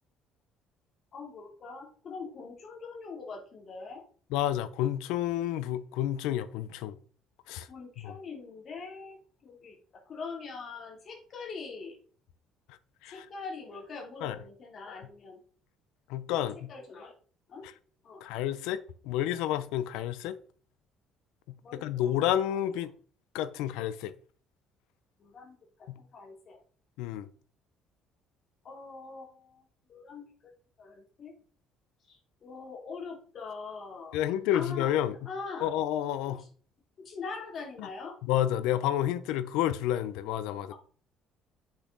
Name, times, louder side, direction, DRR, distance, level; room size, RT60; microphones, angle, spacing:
voice 1, 1.1-4.0 7.7-12.0 13.1-15.4 16.3-16.4 16.7-17.1 17.5-17.7 18.0-18.2 21.6-22.1 22.5-22.6 25.2-26.6 28.6-29.6 29.9-30.5 30.8-31.3 32.1-34.2 34.5-34.9 35.2-35.7 36.3-36.5 37.0-38.2 40.7-40.8, left 4 dB, 45° left, 3.1 m, -43 dB
voice 2, 4.3-7.0 7.5-7.7 8.0-8.2 13.0-13.3 14.2-14.4 16.1-16.7 17.6-17.7 18.2-20.4 21.8-22.9 23.3-24.1 25.9-26.0 27.0-27.3 34.1-35.2 35.6-36.4 37.8-37.9 38.2-40.7, left 12 dB, 85° left, 0.7 m, -30 dB
8.3 x 6.4 x 4.0 m
cardioid pair, 100°, 0 cm